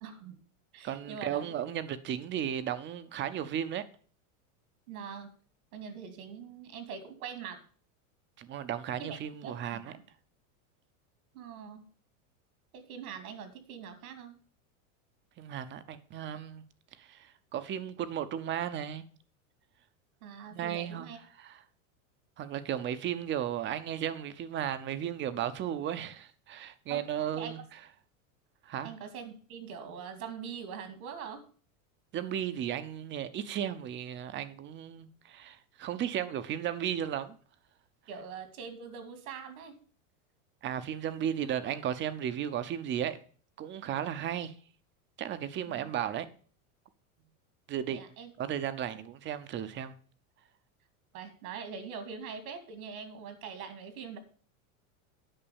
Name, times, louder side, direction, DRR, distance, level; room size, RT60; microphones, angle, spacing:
voice 1, 0.0-0.4 0.7-1.6 4.9-5.3 5.7-7.6 9.0-10.0 11.3-11.9 12.7-14.4 20.2-21.2 26.9-27.6 28.8-31.4 38.1-39.8 45.7-45.9 47.9-48.3 51.1-54.2, right 6 dB, 80° right, 2.5 m, -43 dB
voice 2, 0.8-3.8 8.4-9.9 15.4-16.6 17.0-19.0 20.5-21.1 21.3-21.6 22.4-27.6 28.6-28.9 32.1-37.4 40.6-43.2 43.6-44.5 45.2-46.3 47.7-48.0 48.4-50.0, right 10 dB, 25° right, 0.7 m, -35 dB
8.9 x 6.0 x 7.0 m
supercardioid pair, 140°, 43 cm